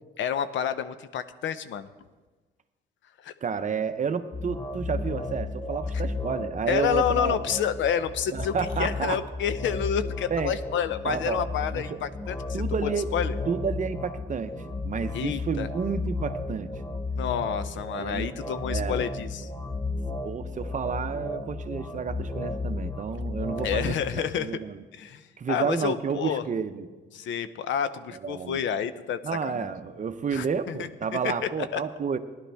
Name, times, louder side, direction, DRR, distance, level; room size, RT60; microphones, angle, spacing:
voice 1, 0.2-1.9 3.2-3.3 5.9-6.0 6.7-8.5 8.8-13.4 15.1-15.7 17.2-19.5 23.6-24.6 24.9-26.4 27.1-29.7 30.3-31.8, left 8 dB, 70° left, 13 dB, 0.7 m, -29 dB
voice 2, 3.4-7.4 8.3-9.2 10.3-10.5 11.0-12.0 12.5-13.1 13.5-14.5 14.8-16.7 18.0-19.0 20.2-24.8 25.4-26.9 28.1-28.6 29.2-32.2, right 6 dB, 40° right, 10 dB, 0.7 m, -31 dB
sound 1, 4.3-23.9, left 3 dB, 15° left, 0.8 m, -33 dB
sound 2, 10.6-23.3, right 7 dB, 75° right, 0.9 m, -50 dB
16.5 x 11.5 x 3.4 m, 1.3 s
cardioid pair, 90°, 20 cm